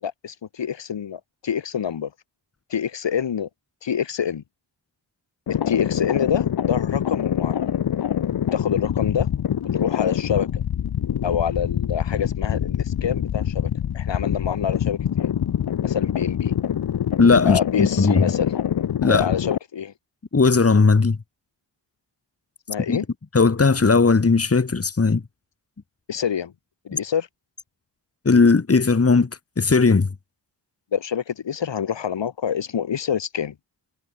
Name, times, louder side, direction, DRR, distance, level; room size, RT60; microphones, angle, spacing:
voice 1, 0.0-2.1 2.7-3.5 3.8-4.4 5.5-7.7 8.5-9.3 9.6-10.6 11.2-15.3 15.8-16.5 17.4-18.6 19.1-19.9 22.7-23.0 26.1-26.5 26.8-27.3 30.9-33.5, left 8 dB, 80° left, 6.2 m, -26 dB
sound 1, 5.5-19.6, left 9 dB, 60° left, 1.0 m, -25 dB
voice 2, 17.2-18.3 19.0-19.3 20.3-21.2 22.9-23.0 23.3-25.2 28.3-29.3 29.6-30.1, left 4 dB, 30° left, 3.6 m, -17 dB
wide cardioid pair, 100°, 43 cm